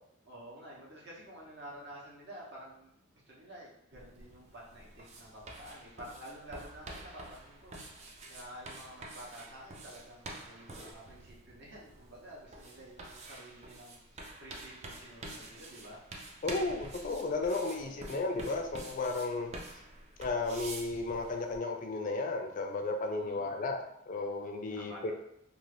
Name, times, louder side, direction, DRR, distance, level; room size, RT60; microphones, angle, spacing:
voice 1, 0.2-16.0 17.7-18.1 23.2-23.6 24.7-25.1, equal, 55° right, -4 dB, 0.9 m, -50 dB
sound 1, 3.9-21.6, right 2 dB, 30° right, 0.4 m, -48 dB
voice 2, 16.4-19.5 20.2-23.8 24.1-25.1, left 3 dB, 40° left, 4 dB, 0.4 m, -34 dB
2.5 x 2.4 x 3.2 m, 0.77 s
head